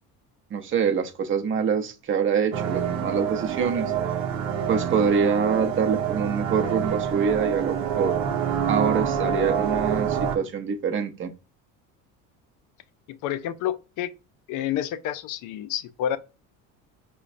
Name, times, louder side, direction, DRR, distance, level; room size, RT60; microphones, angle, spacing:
voice 1, 0.5-3.9 4.7-8.2 8.7-11.3, right 6 dB, 35° right, 0.6 m, -25 dB
sound 1, 2.5-10.4, right 8 dB, 80° right, 0.8 m, -27 dB
voice 2, 13.1-14.1 14.5-16.2, left 11 dB, 60° left, 0.5 m, -29 dB
5.1 x 2.2 x 2.4 m
supercardioid pair, 110°, 35 cm